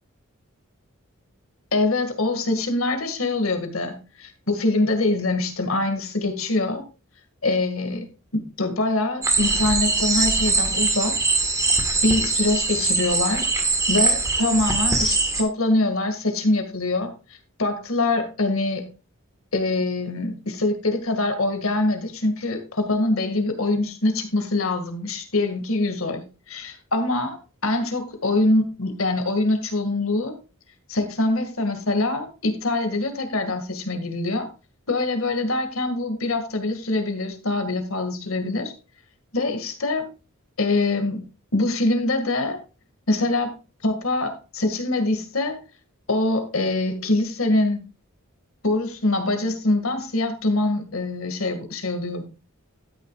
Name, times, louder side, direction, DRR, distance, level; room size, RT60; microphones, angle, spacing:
voice 1, 1.7-6.8 7.4-8.1 8.3-11.2 12.0-13.5 13.9-17.1 17.6-18.9 19.5-30.3 30.9-34.5 34.9-38.7 39.3-40.1 40.6-41.2 41.5-42.6 43.1-43.6 43.8-45.6 46.1-47.8 48.6-52.2, left 2 dB, 70° left, 2.0 m, -24 dB
sound 1, 9.2-15.4, right 3 dB, 15° right, 1.6 m, -22 dB
12.5 x 9.5 x 2.4 m
head